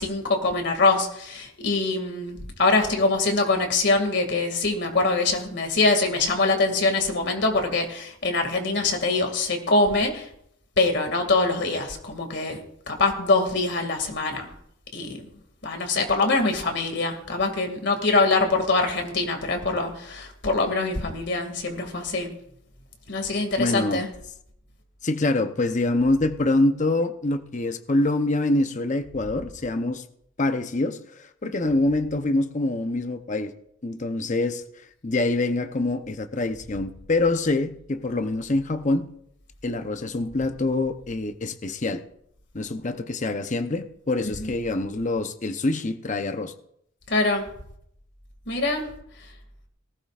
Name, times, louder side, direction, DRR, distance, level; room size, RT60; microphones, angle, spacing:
voice 1, 0.0-10.3 10.8-12.6 12.9-14.5 14.9-15.2 15.6-22.3 23.1-24.1 44.2-44.5 47.1-47.5 48.5-48.9, left 3 dB, 60° left, 5 dB, 2.2 m, -24 dB
voice 2, 23.6-24.0 25.0-30.0 30.4-33.5 33.8-34.6 35.0-39.1 39.6-42.0 42.5-46.5, left 2 dB, 40° left, 8 dB, 0.8 m, -25 dB
18.5 x 16.0 x 2.5 m, 0.71 s
head